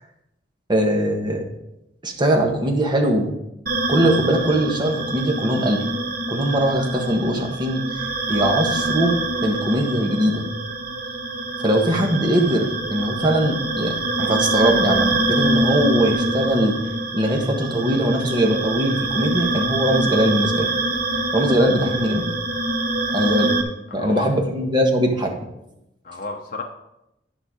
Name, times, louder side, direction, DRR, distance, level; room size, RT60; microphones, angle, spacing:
voice 1, 0.7-1.4 2.0-3.3 3.9-5.8 6.3-8.0 8.3-10.5 11.6-16.8 17.1-20.7 21.3-22.3 23.1-23.6 23.9-25.3, equal, 25° right, 2 dB, 1.4 m, -21 dB
sound 1, 3.7-23.6, right 2 dB, 55° right, 1.1 m, -25 dB
voice 2, 23.9-24.3 26.0-26.6, left 3 dB, 50° left, 1 dB, 0.9 m, -31 dB
11.0 x 5.5 x 5.0 m, 0.86 s
head